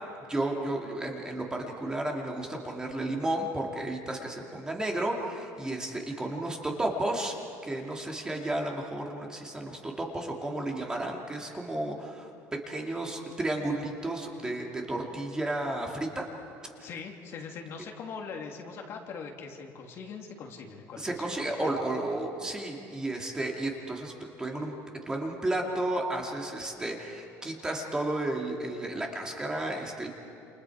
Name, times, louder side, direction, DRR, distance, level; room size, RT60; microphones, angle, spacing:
voice 1, 0.3-7.3 7.6-16.3 16.8-16.9 21.0-24.1 24.4-24.7 25.1-30.1, right 1 dB, 10° right, 0 dB, 2.4 m, -32 dB
voice 2, 16.8-21.8, left 5 dB, 45° left, 2 dB, 2.6 m, -41 dB
29.0 x 28.0 x 4.9 m, 2.8 s
cardioid pair, 150°, 6 cm